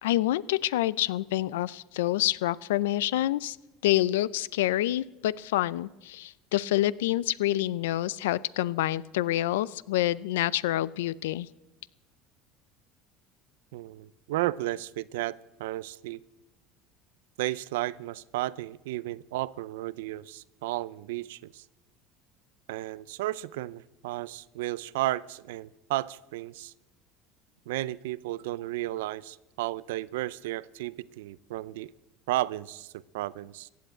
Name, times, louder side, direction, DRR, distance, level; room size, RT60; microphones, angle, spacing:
voice 1, 0.0-3.6 3.8-11.5, left 15 dB, 90° left, 20 dB, 0.5 m, -27 dB
voice 2, 13.7-16.2 17.4-21.6 22.7-26.7 27.7-31.9 32.3-33.7, right 16 dB, 85° right, 20 dB, 0.5 m, -33 dB
15.5 x 8.5 x 8.9 m, 1.0 s
supercardioid pair, 100°, 0 cm